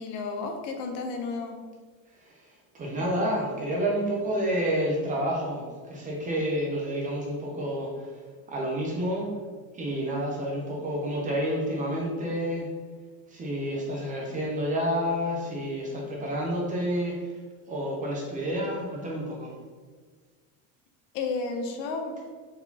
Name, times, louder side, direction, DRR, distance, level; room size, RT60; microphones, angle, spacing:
voice 1, 0.0-1.6 21.1-22.1, left 4 dB, 75° left, 4 dB, 0.8 m, -32 dB
voice 2, 2.2-8.1 8.5-9.3 9.7-12.7 13.3-17.3 17.7-19.5, equal, 20° right, -2 dB, 0.5 m, -29 dB
4.6 x 3.8 x 2.7 m, 1.5 s
cardioid pair, 165°, 41 cm